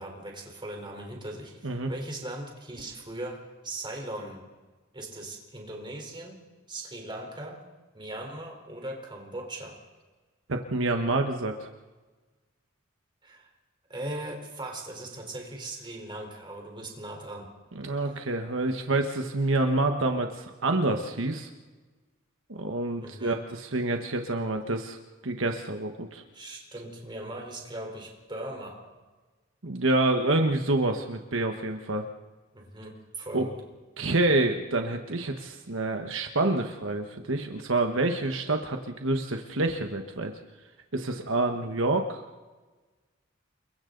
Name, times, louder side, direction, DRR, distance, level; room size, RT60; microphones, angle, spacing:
voice 1, 0.0-4.4 4.9-6.4 6.7-7.6 7.9-9.8 13.2-13.5 13.9-17.5 23.0-23.4 26.3-28.8 32.5-33.6, right 1 dB, 25° right, 1 dB, 4.1 m, -39 dB
voice 2, 10.5-11.7 17.7-21.5 22.5-25.0 25.2-26.2 29.6-32.0 33.3-33.5 34.0-40.3 40.9-42.2, right 2 dB, 70° right, 4 dB, 1.3 m, -27 dB
29.5 x 22.5 x 4.0 m, 1.3 s
head